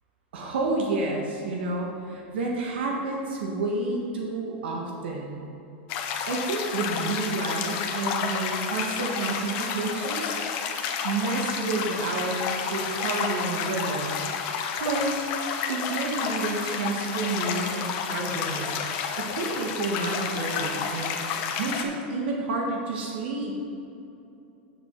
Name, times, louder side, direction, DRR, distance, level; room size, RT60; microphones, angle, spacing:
voice 1, 0.3-5.4 6.3-10.4 11.0-14.2 14.8-15.3 15.7-18.8 19.2-21.2 21.6-23.6, right 3 dB, 80° right, -1 dB, 1.4 m, -30 dB
sound 1, 5.9-21.8, left 7 dB, 45° left, 0.9 m, -30 dB
8.9 x 6.9 x 4.5 m, 2.7 s
supercardioid pair, 145°, 6 cm